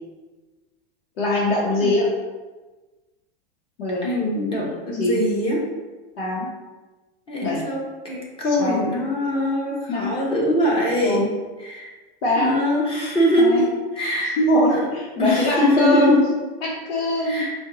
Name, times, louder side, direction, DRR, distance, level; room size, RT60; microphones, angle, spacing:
voice 1, 1.2-2.1 3.8-4.1 5.0-5.2 6.2-6.5 7.4-7.7 8.4-8.9 9.9-10.1 11.0-11.3 12.2-12.5 13.4-13.7 14.4-16.2 16.6-17.5, left 1 dB, 80° left, -6 dB, 1.1 m, -22 dB
voice 2, 4.0-5.6 7.3-11.2 11.6-11.9 12.4-13.6 14.0-14.4 14.7-14.8 15.2-16.2 17.2-17.5, left 1 dB, 20° left, -3 dB, 0.8 m, -22 dB
4.3 x 2.3 x 3.8 m, 1.2 s
supercardioid pair, 150°, 30 cm